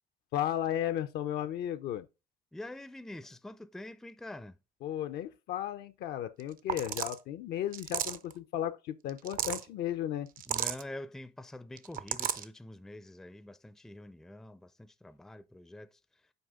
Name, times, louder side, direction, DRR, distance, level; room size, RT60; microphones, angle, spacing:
voice 1, 0.3-2.1 4.8-10.3, left 11 dB, 75° left, 0.5 m, -34 dB
voice 2, 2.5-4.6 10.5-16.0, left 1 dB, 5° left, 0.4 m, -46 dB
sound 1, 6.4-6.5 6.7-7.2 7.7-8.3 9.1-9.6 10.4-10.8 11.8-12.5, right 10 dB, 55° right, 0.6 m, -33 dB
7.9 x 4.9 x 3.6 m
cardioid pair, 110°, 17 cm